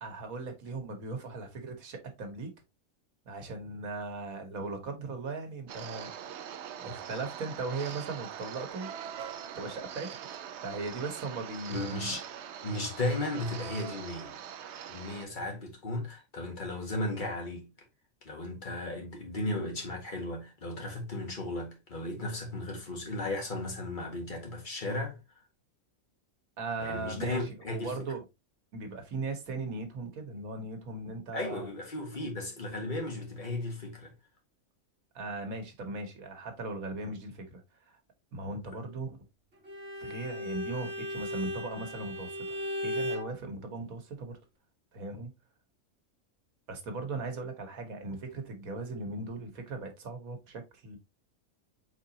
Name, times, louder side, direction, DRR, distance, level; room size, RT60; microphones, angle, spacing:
voice 1, 0.0-2.5 3.3-6.3 6.7-8.9 9.5-10.2 10.6-12.1 26.6-28.2 28.7-31.7 35.1-38.0 38.3-39.2 40.0-44.4 44.9-45.3 46.7-51.0, right 3 dB, 90° right, 1.6 m, -38 dB
sound 1, 5.7-15.3, right 9 dB, 65° right, 0.8 m, -42 dB
voice 2, 11.7-12.2 12.6-14.3 14.9-17.7 18.2-25.2 26.8-28.1 31.3-34.1, left 2 dB, 35° left, 1.6 m, -35 dB
Bowed string instrument, 39.6-43.3, left 1 dB, 50° right, 1.6 m, -36 dB
4.7 x 3.8 x 2.8 m
omnidirectional pair, 1.4 m